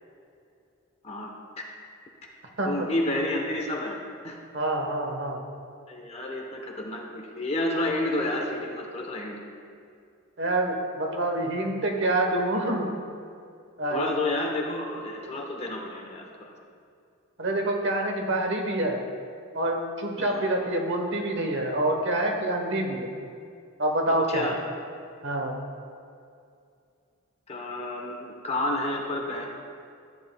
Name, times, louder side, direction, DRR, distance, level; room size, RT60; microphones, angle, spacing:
voice 1, 2.6-4.4 5.9-9.4 13.9-16.5 20.2-20.5 24.1-24.6 27.5-29.5, left 1 dB, 30° left, 1 dB, 0.9 m, -30 dB
voice 2, 4.5-5.4 10.4-12.9 13.8-14.1 17.4-19.0 19.5-23.1 23.8-24.5 25.2-25.6, right 1 dB, 55° right, 2 dB, 1.1 m, -26 dB
13.5 x 9.2 x 2.2 m, 2.4 s
head